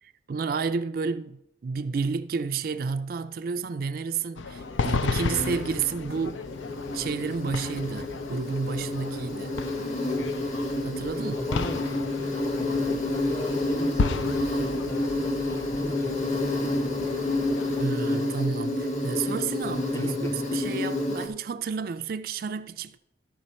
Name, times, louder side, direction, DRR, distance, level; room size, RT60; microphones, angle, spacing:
voice 1, 0.0-6.4 6.9-9.6 10.8-11.4 17.8-20.1 20.5-23.0, right 5 dB, 50° right, 0.3 m, -31 dB
sound 1, 4.4-17.8, left 4 dB, 90° left, 0.5 m, -34 dB
Insect, 4.6-21.3, left 2 dB, 40° left, 1.3 m, -29 dB
voice 2, 11.1-17.1 19.9-20.5, equal, 15° left, 0.7 m, -39 dB
12.5 x 5.9 x 4.2 m
head